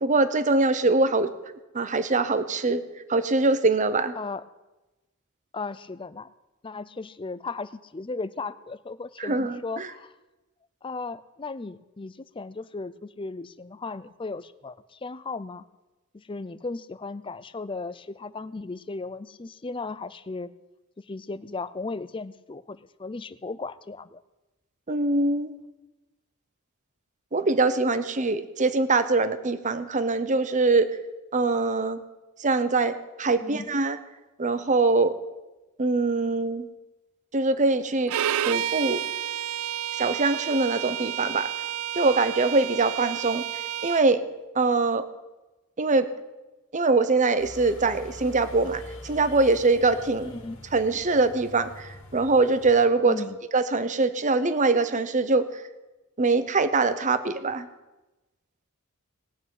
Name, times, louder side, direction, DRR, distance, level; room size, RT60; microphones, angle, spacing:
voice 1, 0.0-1.3 1.7-2.8 3.1-4.1 9.2-9.9 24.9-25.5 27.3-30.9 31.3-32.0 32.4-34.0 34.4-35.1 35.8-36.7 37.3-38.1 38.5-39.0 40.0-41.5 41.9-43.5 43.8-44.2 44.5-45.0 45.8-46.1 46.7-50.3 50.7-53.2 53.5-55.4 56.2-57.7, right 3 dB, 35° right, 12 dB, 0.9 m, -23 dB
voice 2, 5.5-6.3 6.6-10.1 10.8-15.6 16.1-20.5 21.0-24.2 33.4-33.7 50.2-50.6 53.1-53.4, left 3 dB, 25° left, 15 dB, 0.5 m, -36 dB
Bowed string instrument, 38.1-44.1, right 11 dB, 75° right, 0.4 m, -30 dB
sound 1, 47.4-52.9, left 1 dB, 60° left, 2.0 m, -45 dB
18.5 x 6.3 x 9.2 m, 1.1 s
head